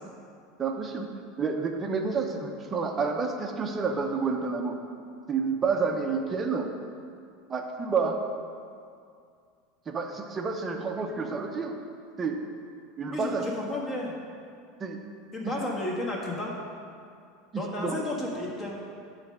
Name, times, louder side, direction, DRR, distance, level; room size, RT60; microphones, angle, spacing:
voice 1, 0.6-1.1 1.4-4.8 5.3-6.7 7.5-8.2 9.9-11.7 12.2-12.4 13.0-13.5 14.8-15.0 15.4-15.5 17.5-17.9, right 5 dB, 20° right, 4 dB, 0.7 m, -29 dB
voice 2, 13.1-14.1 15.3-16.5 17.5-18.8, left 1 dB, 20° left, -3 dB, 1.4 m, -32 dB
9.3 x 3.3 x 6.5 m, 2.3 s
supercardioid pair, 145°, 0 cm